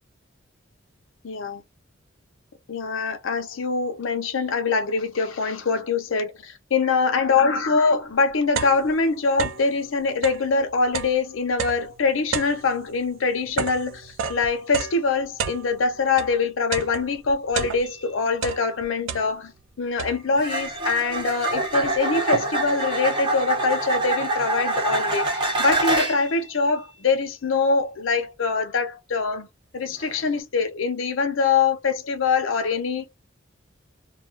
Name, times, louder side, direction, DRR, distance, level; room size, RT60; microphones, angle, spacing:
voice 1, 1.2-1.6 2.7-19.5 19.8-29.5 29.7-33.1, left 4 dB, 85° left, 0.6 m, -24 dB
sound 1, 7.7-7.8 8.1-9.8 10.1-16.4 16.7-18.1 18.4-19.6 20.0-20.5 21.1-21.2 21.5-22.8, right 6 dB, 75° right, 0.3 m, -32 dB
sound 2, 17.8-18.0 20.4-26.3 30.0-30.2, right 2 dB, 25° right, 0.8 m, -25 dB
2.3 x 2.2 x 2.4 m
head